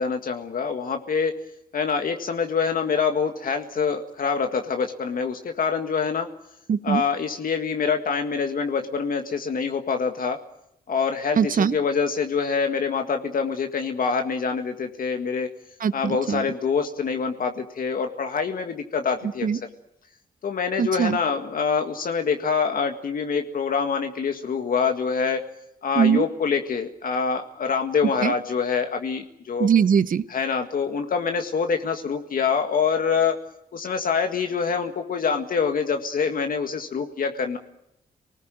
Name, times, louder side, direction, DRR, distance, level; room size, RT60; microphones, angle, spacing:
voice 1, 0.0-1.3 1.7-6.3 6.8-10.4 10.9-15.5 15.9-19.5 20.4-25.5 25.8-29.7 30.3-33.4 33.7-37.6, left 5 dB, 60° left, 5 dB, 1.9 m, -25 dB
voice 2, 6.7-7.0 11.4-11.8 15.8-16.5 19.4-19.6 20.8-21.2 26.0-26.3 28.2-28.3 29.6-30.2, right 7 dB, 55° right, 15 dB, 0.9 m, -21 dB
27.5 x 19.5 x 9.1 m, 0.82 s
wide cardioid pair, 120°, 16 cm